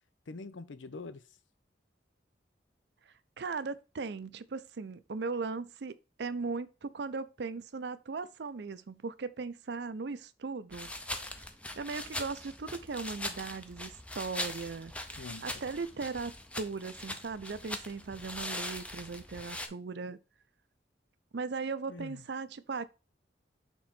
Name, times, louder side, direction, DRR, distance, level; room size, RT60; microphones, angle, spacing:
voice 1, 0.3-1.4 15.2-15.7 21.9-22.2, left 3 dB, 90° left, 0.6 m, -45 dB
voice 2, 3.4-10.9 11.8-20.2 21.3-22.9, right 4 dB, 65° right, 0.5 m, -38 dB
sound 1, 10.7-19.7, left 1 dB, 5° left, 0.5 m, -41 dB
6.1 x 3.8 x 4.2 m
head